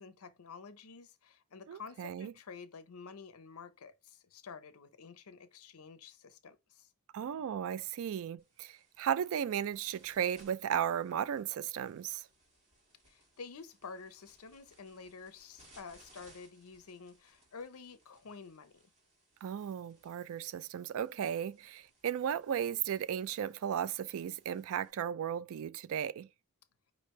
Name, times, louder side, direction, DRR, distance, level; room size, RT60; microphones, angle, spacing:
voice 1, 0.0-6.9 13.1-18.8, left 5 dB, 70° left, 0.6 m, -50 dB
voice 2, 1.7-2.3 7.1-12.3 19.4-26.3, right 9 dB, 65° right, 0.3 m, -35 dB
sound 1, 8.4-24.9, right 1 dB, 30° right, 2.0 m, -66 dB
5.1 x 3.2 x 3.1 m
head